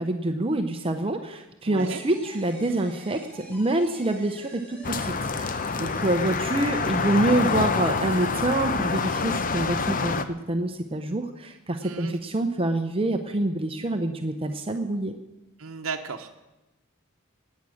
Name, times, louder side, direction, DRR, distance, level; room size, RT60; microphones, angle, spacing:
voice 1, 0.0-10.2 10.5-15.1, right 2 dB, 25° right, 7 dB, 0.7 m, -26 dB
voice 2, 1.6-2.0 5.8-6.1 11.8-12.2 15.6-16.4, right 5 dB, 85° right, 3 dB, 0.9 m, -35 dB
sound 1, 1.8-9.1, right 1 dB, 10° left, 3.9 m, -48 dB
sound 2, 4.8-10.3, left 4 dB, 40° left, 0.7 m, -27 dB
19.0 x 8.5 x 6.4 m, 1.0 s
head